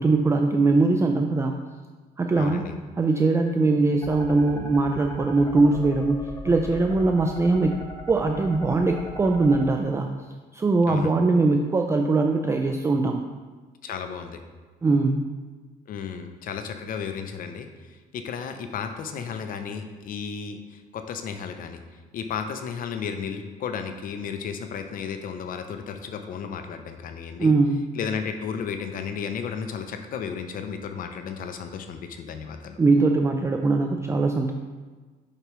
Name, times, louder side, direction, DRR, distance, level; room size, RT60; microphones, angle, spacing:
voice 1, 0.0-1.5 2.2-2.6 3.0-7.7 8.1-10.1 10.5-13.2 14.8-15.3 27.4-27.9 32.8-34.5, right 3 dB, 15° right, 4 dB, 0.3 m, -21 dB
voice 2, 2.4-2.7 10.9-11.1 13.8-14.4 15.9-17.7 18.1-21.8 22.1-27.5 28.0-32.8, left 6 dB, 55° left, 7 dB, 0.6 m, -33 dB
sound 1, 4.0-9.6, equal, 20° left, 0.9 m, -39 dB
6.6 x 5.8 x 3.1 m, 1.4 s
cardioid pair, 110°, 17 cm